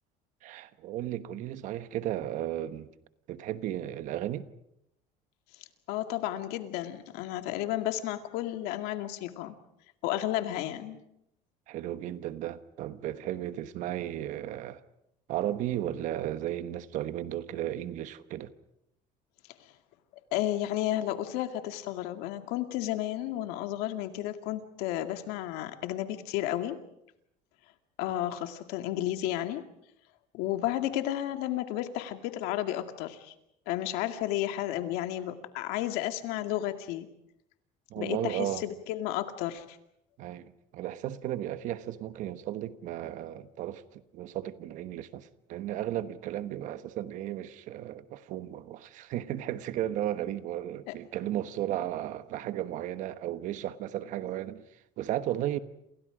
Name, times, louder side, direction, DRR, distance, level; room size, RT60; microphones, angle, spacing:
voice 1, 0.4-2.9 3.3-4.5 11.7-14.8 15.3-18.5 37.9-38.6 40.2-43.8 44.1-54.6 55.0-55.6, right 12 dB, 55° right, 1.2 m, -34 dB
voice 2, 5.9-9.6 10.0-11.0 20.3-26.8 28.0-29.6 30.3-33.3 33.7-37.1 38.0-39.8 50.9-51.0, left 13 dB, 85° left, 2.2 m, -32 dB
29.5 x 28.0 x 5.1 m
cardioid pair, 175°, 16 cm